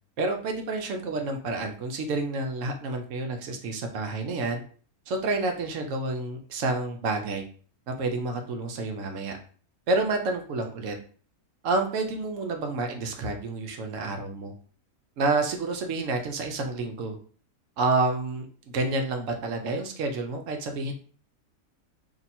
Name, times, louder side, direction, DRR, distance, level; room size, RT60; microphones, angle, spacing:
voice 1, 0.2-4.6 5.1-7.4 7.9-9.3 9.9-11.0 11.6-14.5 15.2-17.2 17.8-18.5 18.7-20.9, right 3 dB, 65° right, 4 dB, 0.9 m, -29 dB
2.8 x 2.6 x 4.2 m, 0.43 s
omnidirectional pair, 1.6 m